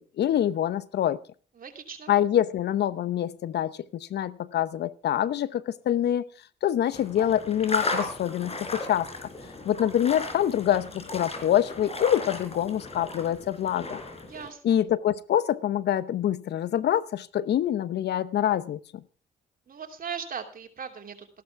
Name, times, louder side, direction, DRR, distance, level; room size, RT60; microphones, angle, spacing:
voice 1, 0.2-1.2 2.1-6.3 6.6-9.3 9.6-14.0 14.6-19.0, left 11 dB, 70° left, 0.8 m, -26 dB
voice 2, 1.6-2.1 14.3-14.8 19.7-21.3, right 7 dB, 55° right, 2.8 m, -38 dB
sound 1, 6.9-14.5, left 3 dB, 35° left, 4.3 m, -35 dB
14.5 x 12.0 x 4.6 m
cardioid pair, 70°, 18 cm